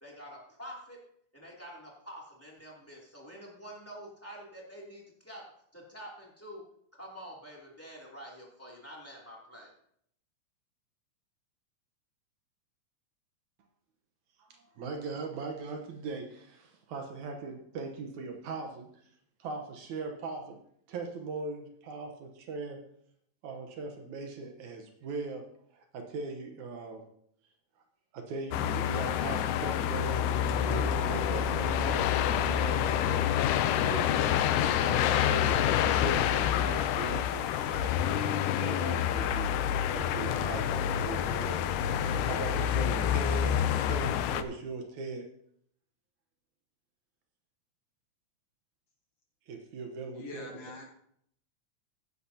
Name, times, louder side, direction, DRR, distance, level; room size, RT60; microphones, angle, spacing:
voice 1, 0.0-1.0 1.3-5.4 5.7-6.6 7.0-9.7, equal, 5° left, -4 dB, 2.3 m, -47 dB
voice 2, 14.4-18.9 19.4-20.6 20.9-22.8 23.4-25.5 25.7-27.0 28.1-34.1 34.6-37.9 38.6-39.5 39.9-41.6 41.9-45.3 49.5-50.6, right 4 dB, 70° right, 4 dB, 2.3 m, -40 dB
sound 1, 28.5-44.4, left 9 dB, 80° left, 2.1 m, -28 dB
voice 3, 50.1-50.8, left 3 dB, 60° left, 1 dB, 2.1 m, -44 dB
16.5 x 10.0 x 2.8 m, 0.69 s
omnidirectional pair, 3.7 m